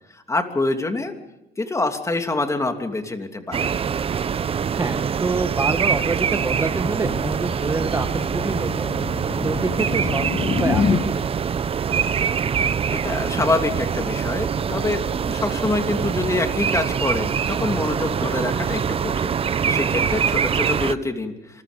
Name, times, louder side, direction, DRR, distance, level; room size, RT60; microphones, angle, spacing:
voice 1, 0.1-1.1 1.6-3.7 12.9-21.6, left 2 dB, 20° left, 5 dB, 2.9 m, -26 dB
sound 1, 3.5-20.9, right 7 dB, 35° right, 0.8 m, -24 dB
voice 2, 4.8-9.0 9.4-11.2, right 3 dB, 20° right, 8 dB, 1.2 m, -27 dB
sound 2, 5.8-11.1, left 5 dB, 40° left, 2.2 m, -27 dB
27.5 x 21.5 x 5.3 m, 0.92 s
cardioid pair, 110°, 17 cm